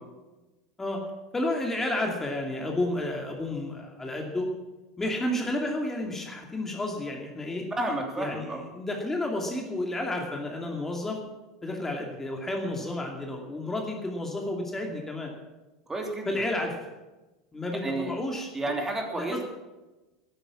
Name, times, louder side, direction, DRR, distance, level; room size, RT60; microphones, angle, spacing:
voice 1, 1.3-4.5 5.0-7.6 8.2-11.2 11.6-15.3 16.2-16.7 17.5-18.5 19.2-19.4, left 1 dB, 15° left, 1 dB, 2.6 m, -31 dB
voice 2, 7.8-8.6 15.9-16.4 17.8-18.1 18.5-19.4, right 2 dB, 15° right, 2 dB, 3.0 m, -31 dB
12.5 x 11.0 x 7.3 m, 1.1 s
figure-of-eight pair, 80°, 2 cm